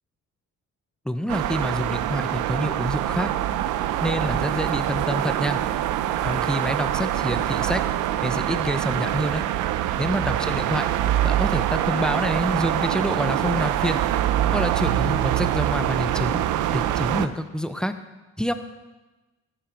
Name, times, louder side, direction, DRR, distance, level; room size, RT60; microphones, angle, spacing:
voice 1, 1.0-3.3 4.0-5.6 6.2-7.8 8.2-9.5 10.0-10.9 11.2-14.0 14.5-16.4 16.7-17.9 18.4-18.5, equal, 5° left, 9 dB, 0.8 m, -27 dB
sound 1, 1.3-17.3, right 12 dB, 90° right, 0.6 m, -24 dB
13.5 x 9.3 x 4.6 m, 1.1 s
cardioid pair, 90°, 30 cm